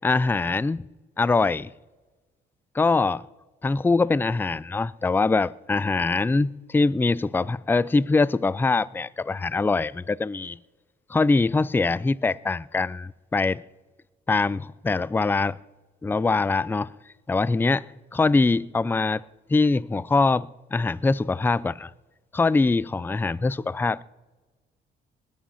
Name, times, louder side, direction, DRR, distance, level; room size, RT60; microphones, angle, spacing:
voice 1, 0.0-0.8 1.2-1.7 2.7-3.2 3.6-10.6 11.1-13.6 14.3-15.6 16.0-16.9 17.3-19.2 19.5-21.9 22.3-24.0, left 3 dB, 10° left, 0.4 m, -23 dB
20.5 x 8.5 x 5.7 m
cardioid pair, 90°, 20 cm